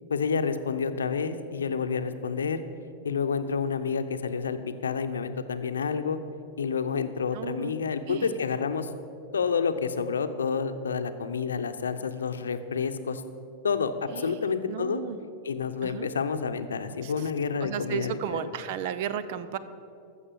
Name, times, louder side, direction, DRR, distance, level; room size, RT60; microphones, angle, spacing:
voice 1, 0.1-2.6 3.0-4.6 4.8-6.2 6.6-8.9 9.3-13.2 13.6-15.0 15.4-18.5, left 6 dB, 90° left, 9 dB, 0.7 m, -29 dB
voice 2, 7.3-7.7 8.1-8.3 14.1-15.2 15.8-16.1 17.0-17.1 17.6-19.6, right 9 dB, 60° right, 13 dB, 0.7 m, -34 dB
14.0 x 6.6 x 7.5 m, 2.5 s
hypercardioid pair, 100°, 0 cm